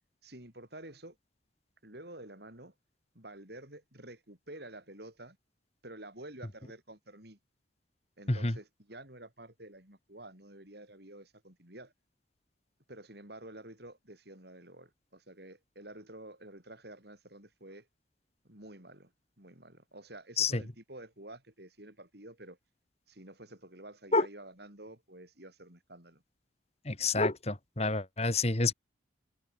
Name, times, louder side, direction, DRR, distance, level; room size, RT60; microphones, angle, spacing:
voice 1, 0.2-1.2 1.8-2.7 3.2-5.4 5.8-7.4 8.2-11.9 12.9-17.9 18.4-19.1 19.4-22.6 23.1-26.2, right 1 dB, 60° right, 7.0 m, -50 dB
voice 2, 26.9-28.7, left 3 dB, 35° left, 2.0 m, -28 dB
head